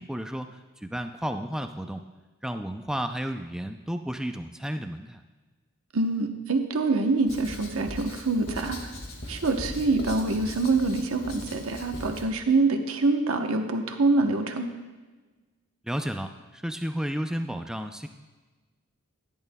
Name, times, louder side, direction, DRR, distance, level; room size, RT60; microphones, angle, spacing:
voice 1, 0.0-2.0 2.4-5.2 15.8-18.1, equal, 5° right, 7 dB, 0.3 m, -32 dB
voice 2, 5.9-8.8 9.3-14.7, right 3 dB, 75° right, 5 dB, 0.9 m, -25 dB
Writing, 7.3-12.3, left 1 dB, 80° left, 1.9 m, -39 dB
14.0 x 10.5 x 2.2 m, 1.3 s
head